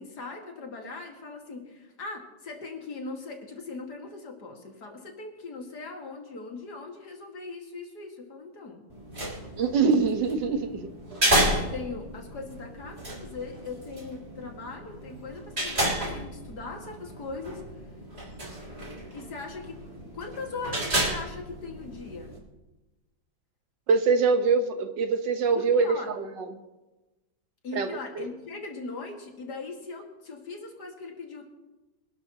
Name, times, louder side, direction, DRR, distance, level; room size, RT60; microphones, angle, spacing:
voice 1, 0.0-8.8 11.6-17.9 19.1-22.4 25.5-26.1 27.6-31.4, left 3 dB, 65° left, 2 dB, 2.5 m, -39 dB
sound 1, 8.9-22.4, right 1 dB, 35° right, 3.7 m, -32 dB
voice 2, 9.6-10.9 23.9-25.9 26.4-26.5 27.8-27.9, right 5 dB, 80° right, 7 dB, 1.8 m, -23 dB
25.5 x 12.0 x 2.9 m, 1.1 s
omnidirectional pair, 1.9 m